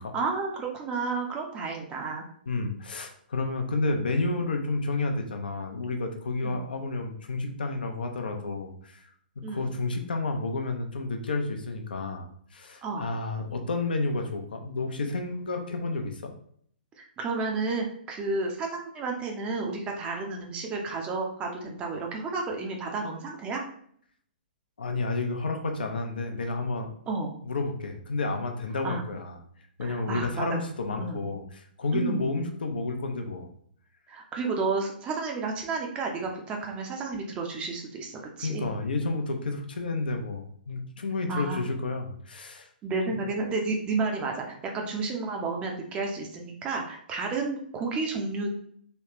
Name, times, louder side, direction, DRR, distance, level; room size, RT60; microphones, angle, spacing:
voice 1, 0.1-2.2 6.4-6.6 9.4-9.7 12.8-13.1 17.0-23.6 27.1-27.3 28.8-29.0 29.8-30.6 31.0-31.2 31.9-32.3 34.1-38.7 39.0-39.1 41.3-41.6 42.8-48.5, right 3 dB, 20° right, 1 dB, 0.7 m, -31 dB
voice 2, 2.5-9.1 9.5-16.3 24.8-26.9 27.4-29.4 29.8-33.5 38.4-42.7, left 3 dB, 65° left, 4 dB, 0.7 m, -31 dB
3.2 x 3.1 x 2.9 m, 0.62 s
figure-of-eight pair, 120°, 5 cm